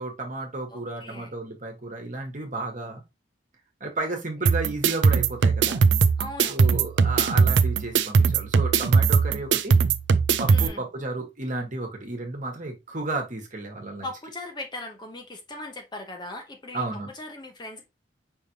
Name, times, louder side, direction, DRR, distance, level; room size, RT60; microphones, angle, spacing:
voice 1, 0.0-3.0 3.8-5.8 6.5-9.8 10.4-14.1 16.7-17.1, right 2 dB, 40° right, 1.3 m, -33 dB
voice 2, 0.7-1.4 6.2-6.6 10.5-10.9 14.0-17.9, left 2 dB, 25° left, 0.7 m, -39 dB
sound 1, 4.5-10.7, right 5 dB, 65° right, 0.4 m, -20 dB
5.3 x 3.3 x 2.7 m
head